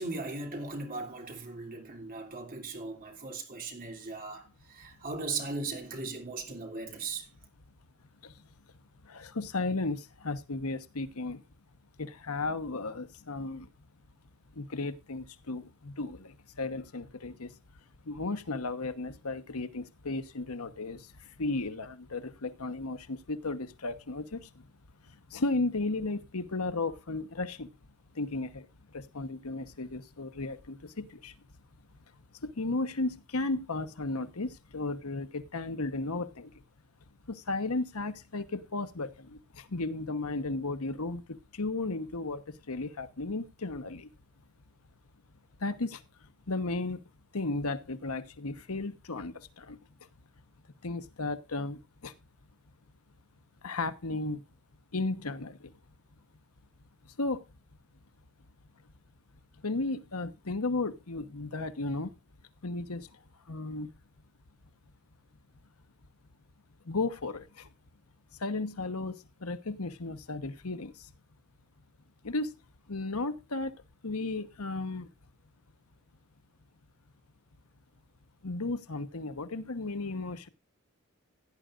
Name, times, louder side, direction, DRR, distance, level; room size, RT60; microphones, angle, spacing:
voice 1, 0.0-7.3, right 3 dB, 40° right, 3.1 m, -38 dB
voice 2, 9.0-11.4 12.0-13.7 14.5-17.5 18.0-24.6 25.3-27.7 28.1-31.3 32.4-36.5 37.3-44.1 45.6-46.0 46.5-47.0 47.3-49.8 50.8-52.1 53.6-54.4 54.9-55.7 57.2-57.4 59.6-62.1 62.6-63.1 63.5-63.9 66.8-67.7 68.4-71.1 72.2-72.6 72.9-75.1 78.4-80.5, left 3 dB, 85° left, 1.1 m, -34 dB
16.5 x 10.5 x 2.5 m
head